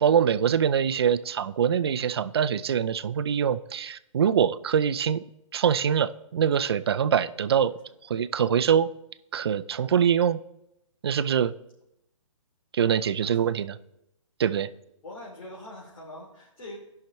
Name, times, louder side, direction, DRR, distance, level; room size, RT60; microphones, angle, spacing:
voice 1, 0.0-5.2 5.5-7.7 8.1-8.9 9.3-10.4 11.0-11.5 12.7-13.8 14.4-14.7, right 8 dB, 50° right, 13 dB, 0.4 m, -24 dB
voice 2, 13.2-13.6 15.0-16.8, left 1 dB, 90° left, -5 dB, 2.8 m, -44 dB
14.5 x 5.8 x 3.1 m, 0.84 s
hypercardioid pair, 175°, 17 cm